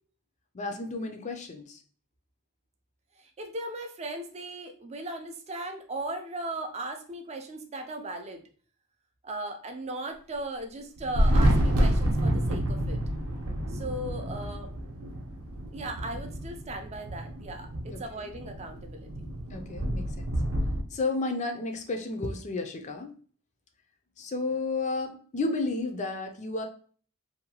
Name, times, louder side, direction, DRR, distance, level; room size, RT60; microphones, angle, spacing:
voice 1, 0.5-1.8 17.9-18.0 19.5-20.3 20.9-23.1 24.2-26.7, left 3 dB, 35° left, 5 dB, 0.4 m, -32 dB
voice 2, 3.2-8.4 9.2-13.0 13.7-14.7 15.7-19.1, right 1 dB, 30° right, 4 dB, 0.4 m, -37 dB
Thunder, 11.0-20.8, equal, 75° right, 0.6 m, -28 dB
2.7 x 2.2 x 2.7 m, 0.43 s
head